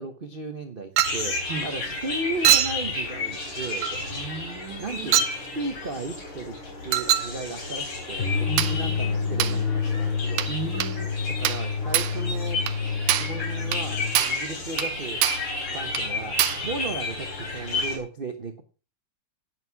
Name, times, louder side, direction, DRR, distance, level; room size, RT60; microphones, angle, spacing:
voice 1, 0.0-4.0 4.8-6.6 6.8-10.5 11.3-12.6 13.1-15.2 15.7-18.6, right 3 dB, 45° right, 0.7 m, -35 dB
sound 1, 1.0-18.0, left 3 dB, 85° left, 4.2 m, -32 dB
Chink clink, 1.0-1.3 2.4-2.8 3.8-4.0 5.1-5.4 6.9-7.3 8.6-8.8 9.4-9.6 10.4-10.6 10.8-11.0 11.4-11.7 11.9-12.2 12.7-12.8 13.1-13.4 13.7-13.9 14.1-14.4 14.8-14.9 15.2-15.5 15.9-16.1 16.4-16.7, right 12 dB, 90° right, 1.7 m, -23 dB
voice 2, 4.0-5.2 8.4-9.6 10.5-11.1, right 4 dB, 70° right, 2.3 m, -36 dB
sound 2, 8.2-14.2, left 5 dB, 60° left, 0.7 m, -28 dB
9.7 x 8.9 x 4.6 m
omnidirectional pair, 2.4 m